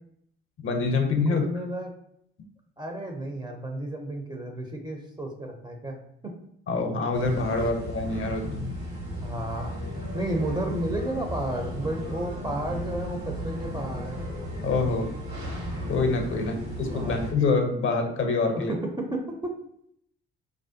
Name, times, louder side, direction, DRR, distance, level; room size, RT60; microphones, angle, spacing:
voice 1, 0.6-1.4 6.7-8.7 14.6-15.0 15.9-18.7, left 3 dB, 40° left, 3 dB, 0.6 m, -25 dB
voice 2, 1.2-1.9 2.8-6.0 6.2-6.3 7.5-7.7 9.2-9.8 10.1-14.2 16.3-16.5 16.9-17.2 18.5-19.5, right 1 dB, 15° right, 2 dB, 0.5 m, -32 dB
sound 1, 7.1-17.3, equal, 80° right, 1.3 m, -35 dB
2.5 x 2.2 x 2.6 m, 0.70 s
hypercardioid pair, 50°, 32 cm